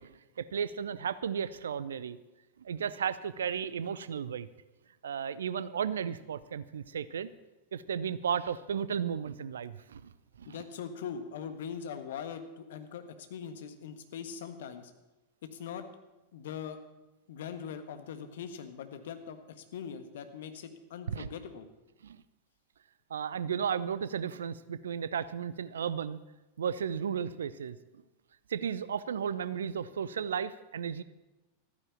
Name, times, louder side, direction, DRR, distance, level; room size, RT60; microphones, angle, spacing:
voice 1, 0.0-2.2 2.6-4.5 5.0-7.3 7.7-10.1 10.4-10.6 21.1-21.3 22.0-22.2 23.1-26.2 26.6-27.8 28.5-31.0, right 7 dB, 65° right, 16 dB, 0.6 m, -34 dB
voice 2, 10.5-14.9 15.4-15.9 16.3-16.8 17.3-21.7, left 7 dB, 60° left, 8 dB, 1.5 m, -41 dB
13.5 x 9.6 x 7.1 m, 1.0 s
figure-of-eight pair, 90°, 0 cm